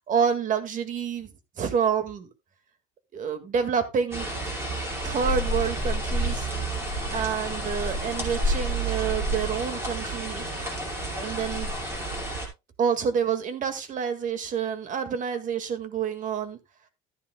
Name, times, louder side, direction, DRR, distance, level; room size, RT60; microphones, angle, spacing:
voice 1, 0.1-2.3 3.1-4.3 5.0-6.5 7.1-10.4 11.2-11.7 12.8-16.6, right 7 dB, 40° right, 1.8 m, -28 dB
sound 1, 4.1-12.5, right 1 dB, 10° right, 5.2 m, -29 dB
14.5 x 10.0 x 2.2 m
cardioid pair, 140°, 21 cm